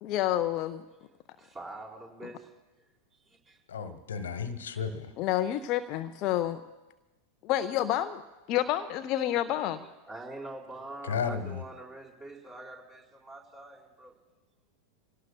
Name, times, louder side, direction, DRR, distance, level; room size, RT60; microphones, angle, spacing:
voice 1, 0.0-0.8 5.2-6.6 7.4-8.2 8.5-9.8, left 12 dB, 40° left, 10 dB, 0.5 m, -29 dB
voice 2, 1.4-2.5 3.3-3.6 9.8-14.1, right 2 dB, 20° right, -1 dB, 4.0 m, -45 dB
voice 3, 3.7-5.1 11.0-11.6, left 6 dB, 65° left, 10 dB, 1.1 m, -33 dB
27.0 x 17.5 x 2.3 m, 1.1 s
figure-of-eight pair, 90°, 0 cm